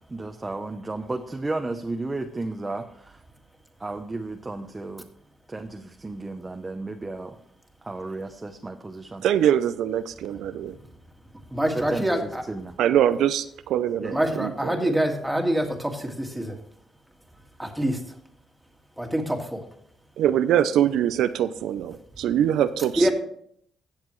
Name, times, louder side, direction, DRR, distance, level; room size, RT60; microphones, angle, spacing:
voice 1, 0.1-3.2 3.8-5.1 5.5-7.4 7.8-9.2 11.7-12.8 14.0-14.3 14.6-14.8, right 2 dB, 20° right, 5 dB, 0.7 m, -33 dB
voice 2, 9.2-10.8 12.8-15.0 20.2-23.1, right 10 dB, 80° right, 11 dB, 0.5 m, -23 dB
voice 3, 11.5-12.4 14.1-16.6 17.6-18.0 19.0-19.6 23.0-23.1, right 1 dB, 5° right, 3 dB, 1.9 m, -25 dB
15.5 x 7.4 x 3.1 m, 0.66 s
cardioid pair, 90°, 0 cm